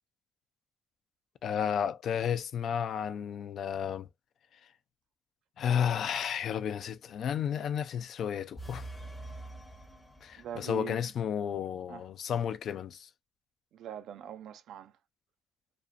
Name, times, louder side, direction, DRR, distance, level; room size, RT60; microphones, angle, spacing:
voice 1, 1.4-4.1 5.6-8.9 10.2-13.1, left 8 dB, 65° left, 0.3 m, -32 dB
sound 1, 8.6-10.8, right 2 dB, 15° left, 0.6 m, -45 dB
voice 2, 10.4-11.1 11.9-12.1 13.7-15.0, right 10 dB, 80° right, 0.3 m, -43 dB
2.5 x 2.1 x 2.4 m
cardioid pair, 90°, 0 cm